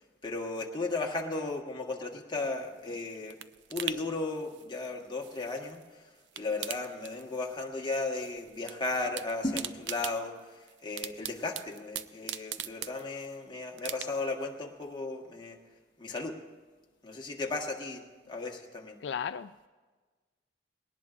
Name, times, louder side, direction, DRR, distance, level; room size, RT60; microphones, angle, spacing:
voice 1, 0.2-3.4 3.7-5.8 6.4-10.3 10.8-15.6 16.0-16.4 17.0-19.0, left 3 dB, 25° left, 0 dB, 1.4 m, -35 dB
sound 1, 2.6-5.9 6.2-7.7 7.9-8.7 9.0-13.4 13.8-14.4 14.8-14.9, right 10 dB, 80° right, 0.5 m, -41 dB
voice 2, 19.0-19.7, left 7 dB, 75° left, 11 dB, 0.3 m, -35 dB
20.5 x 18.0 x 2.5 m, 1.3 s
head